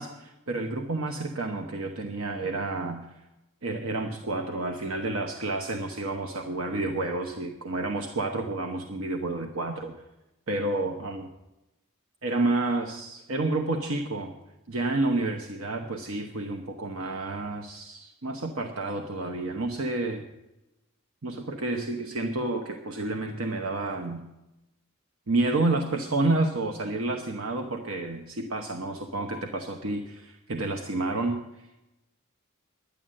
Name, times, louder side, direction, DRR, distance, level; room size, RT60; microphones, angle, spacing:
voice 1, 0.0-3.1 3.6-9.9 10.5-11.3 12.2-14.3 14.7-20.2 21.2-24.2 25.3-31.4, right 2 dB, 75° right, 3 dB, 1.0 m, -30 dB
10.5 x 10.0 x 7.6 m, 0.95 s
head